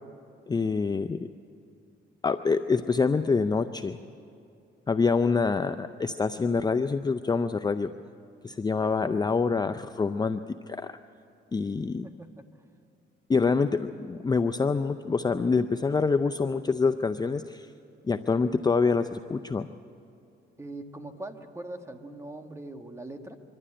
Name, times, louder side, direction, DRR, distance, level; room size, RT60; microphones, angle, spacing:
voice 1, 0.5-1.3 2.2-4.0 4.9-7.9 8.4-11.0 11.5-12.1 13.3-17.7 18.0-19.7, left 4 dB, 20° left, 9 dB, 0.5 m, -26 dB
voice 2, 12.0-12.5 20.6-23.4, right 2 dB, 15° right, 6 dB, 1.5 m, -41 dB
24.0 x 12.0 x 10.0 m, 2.5 s
cardioid pair, 90°, 20 cm